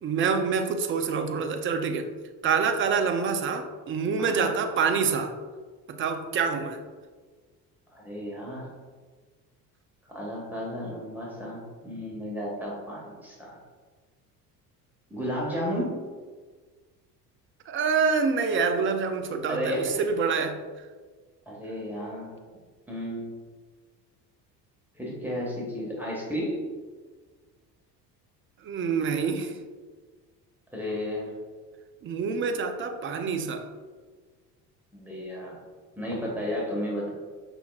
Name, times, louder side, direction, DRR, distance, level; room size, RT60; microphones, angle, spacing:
voice 1, 0.0-2.1 2.4-5.3 5.9-6.8 17.7-20.6 28.6-29.6 32.0-33.7, right 5 dB, 25° right, 7 dB, 0.4 m, -26 dB
voice 2, 4.2-4.5 7.9-8.7 10.0-13.6 15.1-15.9 19.5-20.0 21.5-22.4 22.9-23.4 24.9-26.6 30.7-31.3 34.9-35.6 36.0-37.1, equal, 5° right, -4 dB, 1.5 m, -33 dB
5.7 x 3.8 x 2.3 m, 1.4 s
hypercardioid pair, 65°, 49 cm